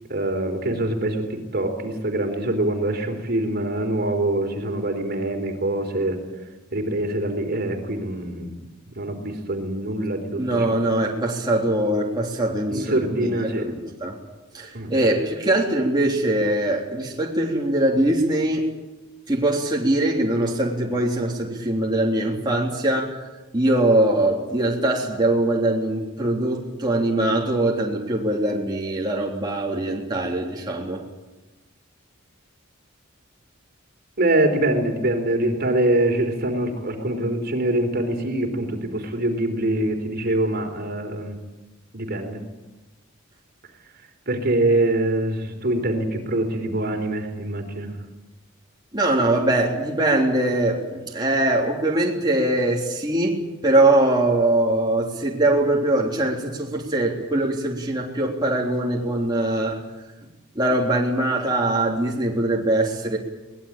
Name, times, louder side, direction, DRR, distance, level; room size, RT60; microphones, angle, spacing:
voice 1, 0.1-6.2 6.7-8.6 9.0-10.8 12.7-13.6 14.7-14.9 34.2-41.4 41.9-42.4 44.3-47.9, right 1 dB, 50° right, 5 dB, 3.8 m, -24 dB
voice 2, 10.4-14.2 14.5-18.7 19.3-23.3 23.5-31.0 48.9-59.8 60.6-63.2, right 1 dB, 20° right, -2 dB, 3.5 m, -22 dB
23.0 x 20.0 x 8.9 m, 1.1 s
head